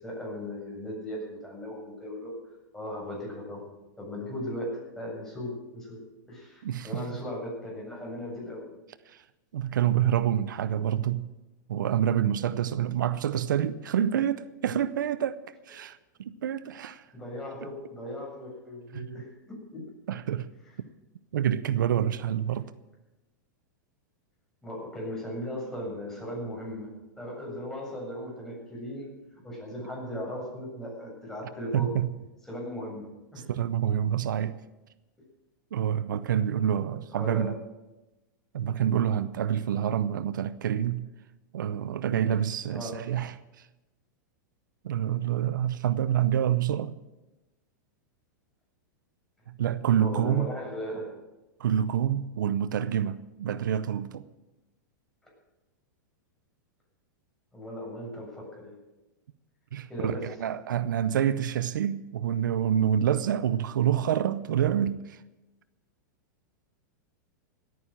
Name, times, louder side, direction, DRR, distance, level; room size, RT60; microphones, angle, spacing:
voice 1, 0.0-2.4 2.7-3.6 4.0-8.7 17.1-19.9 24.6-32.0 32.5-33.5 37.1-37.6 42.7-43.1 50.0-51.2 57.5-58.7 59.9-60.3, left 1 dB, 5° left, 7.6 m, -37 dB
voice 2, 6.6-7.0 9.1-9.2 9.5-11.3 11.7-15.4 15.7-17.1 18.9-19.1 20.1-20.5 21.3-22.7 31.7-32.1 33.5-34.6 35.7-37.6 38.5-41.1 41.5-43.7 44.8-47.0 49.5-50.5 51.6-54.2 59.7-65.2, right 10 dB, 80° right, 0.7 m, -27 dB
17.5 x 9.6 x 7.4 m
hypercardioid pair, 120°, 10 cm